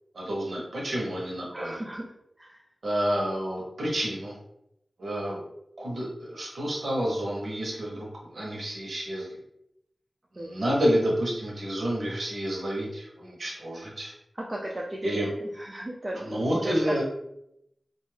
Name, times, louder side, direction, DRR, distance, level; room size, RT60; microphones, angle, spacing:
voice 1, 0.1-1.8 2.8-4.3 5.0-5.4 5.8-9.3 10.3-14.1 15.0-15.3 16.1-17.0, equal, 75° right, -4 dB, 0.8 m, -29 dB
voice 2, 1.5-2.1 2.4-2.6 10.4-10.5 14.5-15.3 15.6-16.7, right 1 dB, 25° right, -2 dB, 0.4 m, -35 dB
2.5 x 2.3 x 3.2 m, 0.80 s
wide cardioid pair, 90°, 0 cm